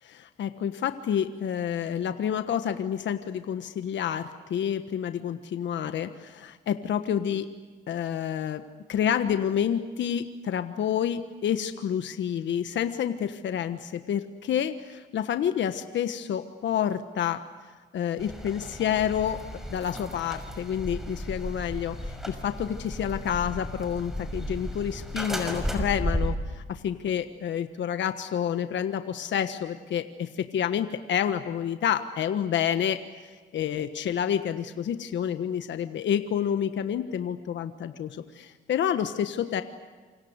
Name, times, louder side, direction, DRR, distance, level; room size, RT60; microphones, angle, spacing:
voice 1, 0.0-7.5 7.9-8.6 8.9-17.4 17.9-19.4 19.7-33.0 33.3-39.6, left 9 dB, 65° left, 9 dB, 1.4 m, -29 dB
sound 1, 18.2-26.3, equal, ahead, 6.0 m, -34 dB
28.0 x 26.0 x 8.1 m, 1.4 s
cardioid pair, 90°, 20 cm